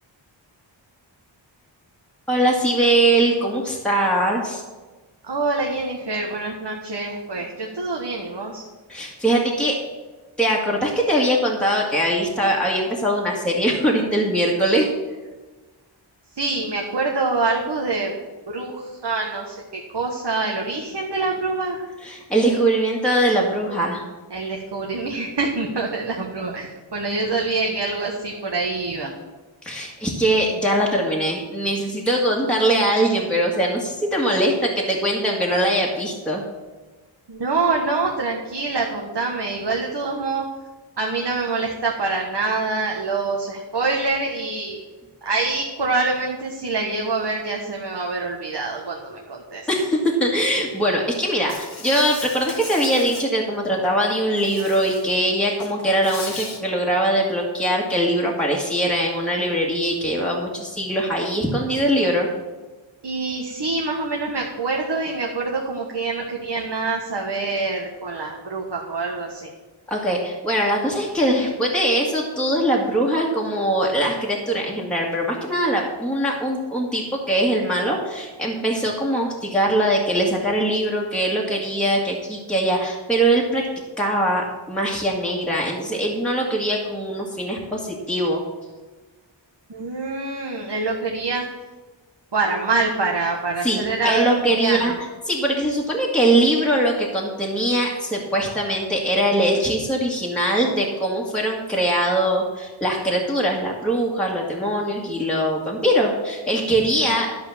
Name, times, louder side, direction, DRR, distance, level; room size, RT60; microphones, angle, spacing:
voice 1, 2.3-4.6 8.9-9.8 10.4-14.9 22.0-24.1 29.6-36.4 49.1-49.2 49.7-62.3 69.9-83.6 84.0-88.4 93.6-107.3, right 1 dB, ahead, -3 dB, 1.8 m, -22 dB
voice 2, 5.2-8.6 16.3-18.1 18.5-21.9 24.3-29.1 37.3-40.4 41.0-44.8 45.2-49.7 63.0-69.5 89.7-91.4 92.3-95.0 107.0-107.2, right 3 dB, 55° right, 0 dB, 1.4 m, -25 dB
Insect, 51.5-53.3 54.4-55.2 55.5-56.6, left 3 dB, 55° left, 1.6 m, -36 dB
12.0 x 5.1 x 7.1 m, 1.2 s
wide cardioid pair, 70°, 47 cm